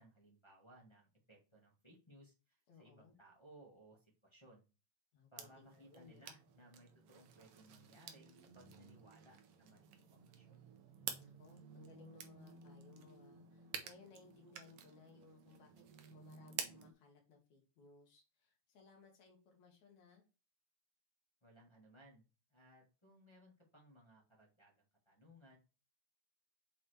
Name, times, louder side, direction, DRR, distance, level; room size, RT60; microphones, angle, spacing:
voice 1, 0.0-4.6 5.3-10.6 21.4-25.6, right 1 dB, 15° left, -3 dB, 1.1 m, -63 dB
voice 2, 2.7-3.2 5.1-6.3 8.6-8.9 11.2-20.2, left 4 dB, 75° left, 1 dB, 3.1 m, -63 dB
sound 1, 5.4-16.9, right 8 dB, 65° right, 1.5 m, -51 dB
7.1 x 4.2 x 3.3 m, 0.31 s
omnidirectional pair, 3.3 m